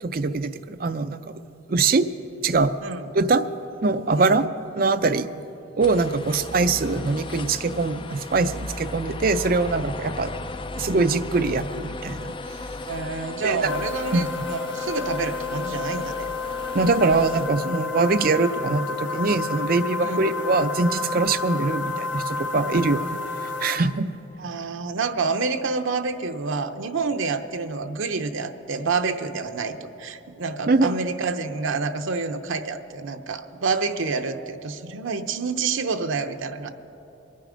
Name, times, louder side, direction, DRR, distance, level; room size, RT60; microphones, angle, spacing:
voice 1, 0.0-1.2 1.7-2.1 2.4-2.7 3.1-3.5 3.8-4.5 4.8-5.3 5.8-10.3 10.7-12.3 13.4-13.7 14.1-14.3 16.7-24.1 30.7-31.0, right 3 dB, 45° right, 10 dB, 0.5 m, -23 dB
sound 1, 5.8-17.5, left 2 dB, 25° left, 0.4 m, -36 dB
voice 2, 12.9-16.3 20.0-20.2 24.4-36.7, right 4 dB, 80° right, 7 dB, 0.7 m, -28 dB
sound 2, 13.7-23.8, left 4 dB, 60° left, 0.7 m, -30 dB
23.0 x 9.5 x 5.1 m, 2.9 s
head